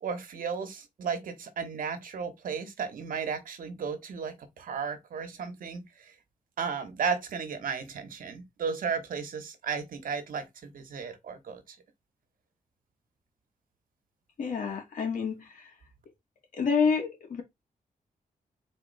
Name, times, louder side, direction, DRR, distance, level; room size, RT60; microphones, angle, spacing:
voice 1, 0.0-6.1 6.6-11.8, right 6 dB, 75° right, 1.3 m, -34 dB
voice 2, 14.4-15.7 16.5-17.4, left 5 dB, 65° left, 1.9 m, -28 dB
4.1 x 3.2 x 4.1 m
cardioid pair, 105°, 14 cm